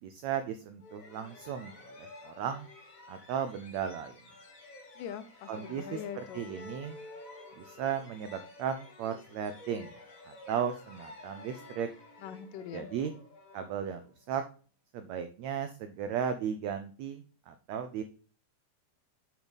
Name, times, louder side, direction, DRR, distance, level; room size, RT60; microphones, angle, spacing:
voice 1, 0.0-2.7 3.1-4.2 5.5-6.0 6.3-7.0 7.6-9.9 10.3-11.9 12.7-13.1 13.5-14.0 14.3-14.4 14.9-18.0, right 8 dB, 90° right, 9 dB, 1.5 m, -35 dB
sound 1, 0.8-14.3, left 2 dB, 35° left, 1.4 m, -51 dB
voice 2, 5.0-6.5 12.2-12.9, left 9 dB, 80° left, 12 dB, 2.2 m, -42 dB
7.8 x 7.0 x 4.0 m, 0.39 s
omnidirectional pair, 4.0 m